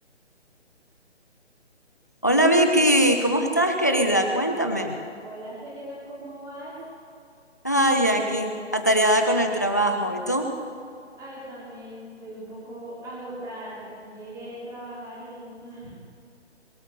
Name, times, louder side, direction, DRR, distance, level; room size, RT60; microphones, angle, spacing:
voice 1, 2.2-5.0 7.6-10.5, right 1 dB, 15° left, 5 dB, 0.5 m, -21 dB
voice 2, 5.2-6.9 7.7-7.8 11.2-15.9, right 1 dB, 10° right, -6 dB, 3.4 m, -39 dB
22.0 x 7.9 x 6.9 m, 2.3 s
figure-of-eight pair, 145°, 35 cm